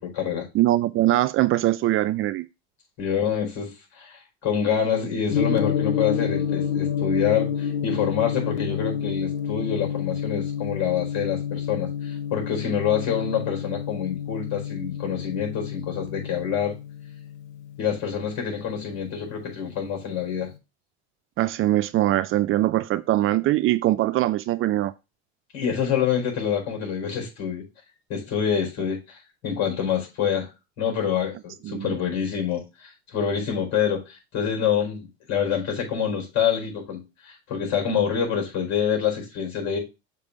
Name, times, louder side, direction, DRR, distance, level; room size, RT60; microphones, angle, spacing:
voice 1, 0.0-0.5 3.0-16.7 17.8-20.5 25.5-27.6 28.1-30.5 30.8-39.8, left 8 dB, 55° left, 4.2 m, -26 dB
voice 2, 0.5-2.5 21.4-24.9 31.6-31.9, right 15 dB, 40° right, 0.4 m, -22 dB
Gong, 5.3-19.5, left 8 dB, 90° left, 0.9 m, -29 dB
6.6 x 3.5 x 4.7 m
hypercardioid pair, 90°, 33 cm